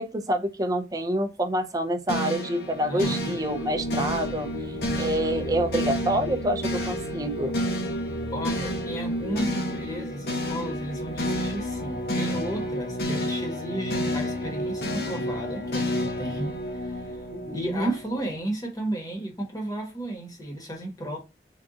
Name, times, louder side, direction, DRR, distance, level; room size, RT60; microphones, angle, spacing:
voice 1, 0.0-4.5 5.0-7.5 17.3-17.9, right 1 dB, 20° right, 0.4 m, -27 dB
sound 1, 2.1-18.4, equal, 60° left, 0.7 m, -30 dB
voice 2, 2.9-3.4 8.3-17.2 17.5-21.2, right 1 dB, 20° left, 1.0 m, -34 dB
3.6 x 2.4 x 3.7 m
head